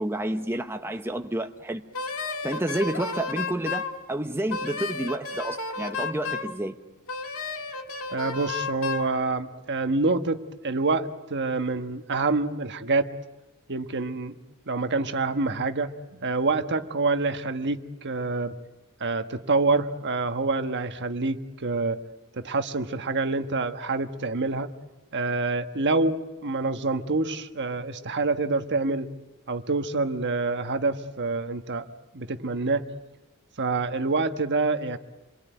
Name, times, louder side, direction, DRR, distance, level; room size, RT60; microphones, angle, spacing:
voice 1, 0.0-1.8 2.4-6.8, right 1 dB, 10° right, 6 dB, 0.9 m, -30 dB
Wind instrument woodwind instrument, 1.9-3.9 4.5-6.5 7.1-9.1, left 4 dB, 65° left, 2.2 m, -32 dB
voice 2, 8.1-13.1 13.7-14.3 14.7-18.5 19.0-22.0 22.3-24.7 25.1-29.1 29.5-31.8 32.1-32.9 33.6-35.0, right 3 dB, 50° right, 9 dB, 1.3 m, -27 dB
28.0 x 23.0 x 9.2 m, 1.1 s
head